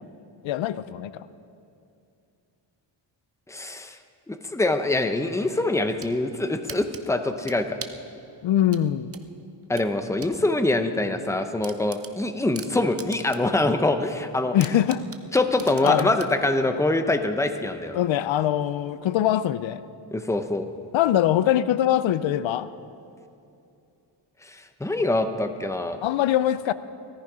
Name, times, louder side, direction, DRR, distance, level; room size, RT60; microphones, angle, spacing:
voice 1, 0.4-1.3 8.4-9.1 14.5-15.0 15.8-16.1 17.9-19.8 20.9-22.7 26.0-26.7, left 11 dB, 90° left, 15 dB, 0.6 m, -23 dB
voice 2, 3.5-3.9 4.3-7.8 9.7-14.6 15.3-18.0 20.1-20.7 24.5-26.0, left 2 dB, 5° left, 8 dB, 0.7 m, -24 dB
sound 1, 5.7-6.2 6.7-8.1 8.7-10.4 10.7-10.8 11.2-11.3 11.6-13.6 13.9-14.0 14.6-16.4, right 6 dB, 30° right, 0.7 m, -40 dB
17.5 x 14.0 x 4.9 m, 2.6 s
wide cardioid pair, 125°, 45 cm